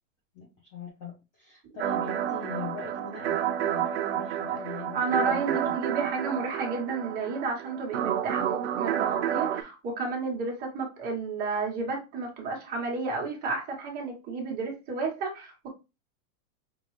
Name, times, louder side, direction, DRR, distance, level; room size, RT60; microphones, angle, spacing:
voice 1, 0.3-5.6, left 4 dB, 20° left, -1 dB, 0.5 m, -41 dB
sound 1, 1.8-9.6, right 10 dB, 50° right, 0.5 m, -30 dB
voice 2, 4.9-15.7, right 4 dB, 20° right, 0 dB, 1.1 m, -31 dB
5.3 x 2.4 x 3.1 m, 0.27 s
supercardioid pair, 170°, 40 cm